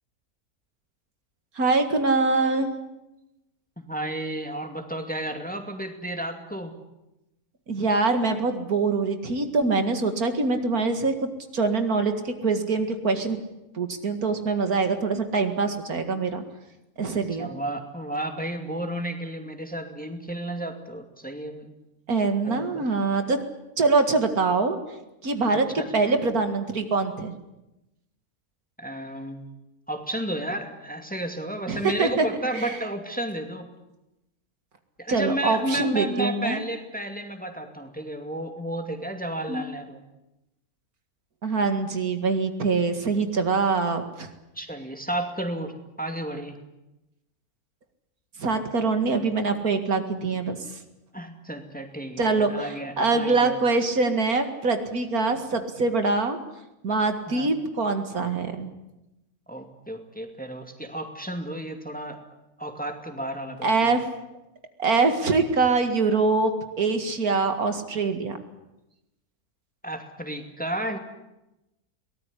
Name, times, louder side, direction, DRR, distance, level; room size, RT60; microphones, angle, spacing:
voice 1, 1.6-2.8 7.7-13.4 13.7-16.4 17.0-17.5 22.1-23.4 23.8-24.8 25.2-25.7 25.9-27.3 31.7-32.3 32.5-32.8 35.1-36.6 39.5-39.7 41.4-44.3 48.4-50.8 52.2-56.4 56.8-58.7 63.6-64.0 64.8-68.4, right 3 dB, 75° right, 7 dB, 2.5 m, -24 dB
voice 2, 3.8-6.7 17.1-21.7 22.4-22.9 25.5-25.9 28.8-29.6 29.9-33.7 35.0-40.0 44.5-46.6 51.1-53.6 57.3-57.5 59.5-62.2 62.6-64.0 69.8-71.0, right 1 dB, 5° left, 5 dB, 2.4 m, -32 dB
23.0 x 18.5 x 9.9 m, 0.94 s
omnidirectional pair, 1.6 m